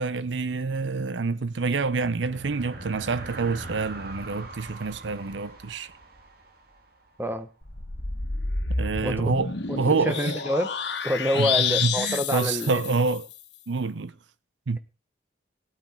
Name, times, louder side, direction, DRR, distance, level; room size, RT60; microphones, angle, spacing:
voice 1, 0.0-5.9 8.8-9.5 9.8-10.3 11.3-13.3 13.7-14.1 14.7-14.8, right 4 dB, 90° right, 0.7 m, -27 dB
sound 1, 1.5-7.2, right 2 dB, 55° right, 2.1 m, -42 dB
sound 2, 7.6-13.4, left 5 dB, 70° left, 1.5 m, -30 dB
voice 2, 9.0-9.4 9.7-9.8 10.0-10.7 11.0-12.8, equal, 10° right, 1.1 m, -27 dB
18.0 x 8.9 x 4.4 m
head